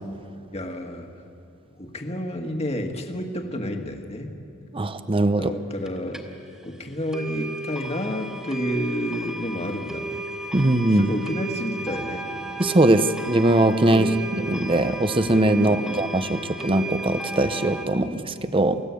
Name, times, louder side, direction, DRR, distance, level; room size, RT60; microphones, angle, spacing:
voice 1, 0.5-1.1 1.8-4.3 5.3-6.3 6.6-10.2 10.9-12.3 13.9-14.2 15.6-16.0, left 1 dB, 30° left, 4 dB, 1.8 m, -30 dB
voice 2, 4.7-5.5 10.5-11.1 12.6-14.1 14.4-18.8, right 1 dB, 25° right, 11 dB, 0.8 m, -21 dB
sound 1, 5.9-6.0 6.1-6.2 6.6-6.7 7.1-17.8, right 2 dB, 5° right, 2.0 m, -34 dB
29.5 x 15.0 x 8.4 m, 2.6 s
head